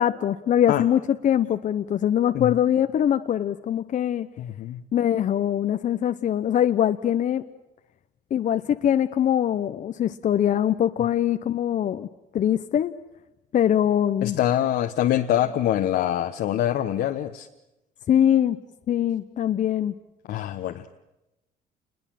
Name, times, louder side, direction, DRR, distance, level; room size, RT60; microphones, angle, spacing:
voice 1, 0.0-4.3 4.9-7.4 8.3-12.1 12.3-12.9 13.5-14.4 18.1-18.6 18.9-19.9, left 10 dB, 50° left, 9 dB, 0.9 m, -22 dB
voice 2, 4.4-4.8 14.2-17.5 20.3-21.0, left 12 dB, 70° left, 5 dB, 1.2 m, -24 dB
28.0 x 21.5 x 7.7 m, 0.95 s
cardioid pair, 110°, 17 cm